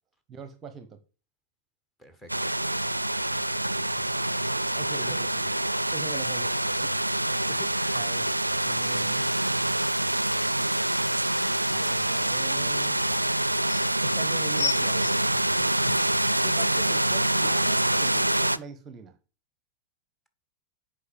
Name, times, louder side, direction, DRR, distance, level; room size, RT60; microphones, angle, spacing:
voice 1, 0.3-1.0 4.7-5.3 5.9-6.9 7.9-8.3 8.6-9.3 11.7-13.3 14.0-15.3 16.4-19.2, right 5 dB, 25° right, 0.9 m, -42 dB
voice 2, 2.0-2.5 7.5-8.1, equal, 10° left, 1.7 m, -47 dB
sound 1, 2.3-18.6, right 1 dB, 85° right, 0.4 m, -26 dB
sound 2, 14.5-16.2 16.9-17.0, left 8 dB, 55° left, 1.6 m, -33 dB
8.2 x 5.3 x 7.1 m
figure-of-eight pair, 90°, 0 cm